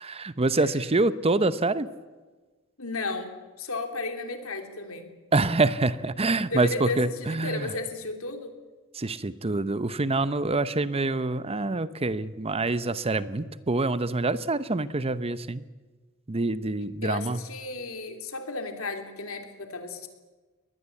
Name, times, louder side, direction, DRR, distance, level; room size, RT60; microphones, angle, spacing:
voice 1, 0.0-1.9 5.3-7.7 8.9-15.6 16.3-17.4, right 2 dB, 30° right, 15 dB, 0.8 m, -26 dB
voice 2, 2.8-3.3 3.6-5.1 6.4-8.5 17.0-20.1, left 3 dB, 70° left, 6 dB, 3.3 m, -34 dB
22.5 x 19.5 x 8.4 m, 1.3 s
head